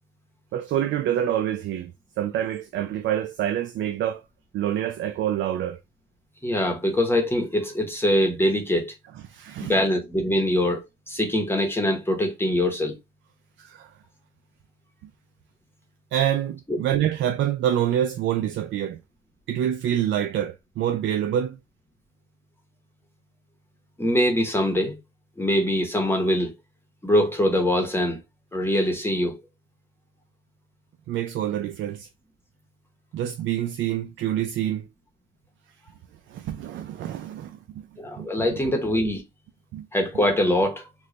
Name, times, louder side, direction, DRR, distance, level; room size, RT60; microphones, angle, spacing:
voice 1, 0.5-1.9 2.2-4.2 4.5-5.8 9.3-9.8 13.6-13.9 16.1-19.0 19.5-21.6 31.1-32.1 33.1-34.9 36.3-37.8 38.2-38.6 39.7-39.9, right 11 dB, 70° right, 0.4 m, -26 dB
voice 2, 6.4-8.9 9.6-13.0 16.7-16.8 24.0-25.0 25.4-26.5 27.0-28.2 28.5-29.4 38.0-39.2 39.9-40.9, left 1 dB, 10° left, 0.9 m, -23 dB
3.1 x 2.2 x 3.8 m
cardioid pair, 90°, 20 cm